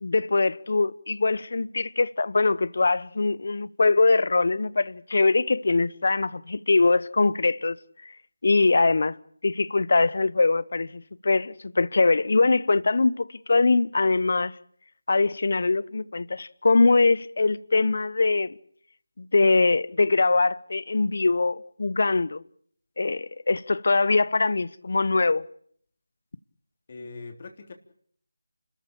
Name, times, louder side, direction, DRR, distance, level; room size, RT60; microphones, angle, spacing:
voice 1, 0.0-7.8 8.0-8.1 8.4-9.2 9.4-14.5 15.1-18.5 19.2-22.4 23.0-25.4, left 3 dB, 55° left, 1.0 m, -22 dB
voice 2, 26.9-27.7, left 3 dB, 35° left, 3.5 m, -41 dB
30.0 x 14.0 x 8.8 m
figure-of-eight pair, 165°, 0 cm